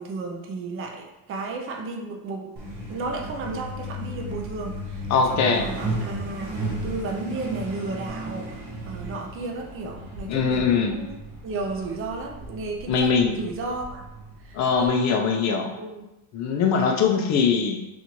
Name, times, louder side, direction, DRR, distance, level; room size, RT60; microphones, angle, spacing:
voice 1, 0.0-2.5 2.9-6.5 6.8-11.2 11.4-14.1 14.4-16.1 16.7-17.0, right 3 dB, 30° right, 2 dB, 0.5 m, -34 dB
Truck, 2.6-14.9, right 1 dB, 80° right, 1.5 m, -35 dB
voice 2, 5.1-5.7 10.2-11.0 12.9-13.4 14.5-15.7 16.3-17.8, left 5 dB, 40° left, 2 dB, 0.5 m, -22 dB
7.0 x 2.5 x 3.0 m, 0.97 s
cardioid pair, 175°, 46 cm